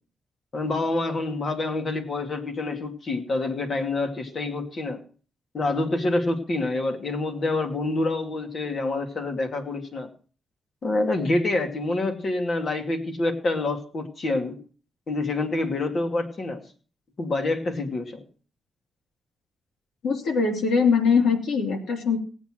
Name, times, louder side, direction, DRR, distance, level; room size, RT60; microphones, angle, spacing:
voice 1, 0.5-5.0 5.5-10.1 10.8-14.6 15.1-16.6 17.2-18.2, left 2 dB, 45° left, 5 dB, 2.5 m, -27 dB
voice 2, 20.0-22.2, left 5 dB, 75° left, 4 dB, 3.1 m, -22 dB
17.5 x 8.4 x 6.1 m, 0.39 s
cardioid pair, 115°, 0 cm